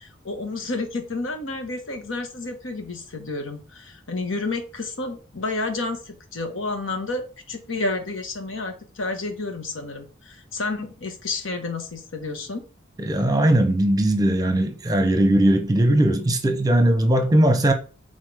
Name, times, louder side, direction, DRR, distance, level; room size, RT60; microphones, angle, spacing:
voice 1, 0.0-12.6, left 3 dB, 90° left, 1.4 m, -30 dB
voice 2, 13.0-17.7, right 1 dB, 20° right, 0.9 m, -19 dB
6.2 x 4.1 x 4.9 m
head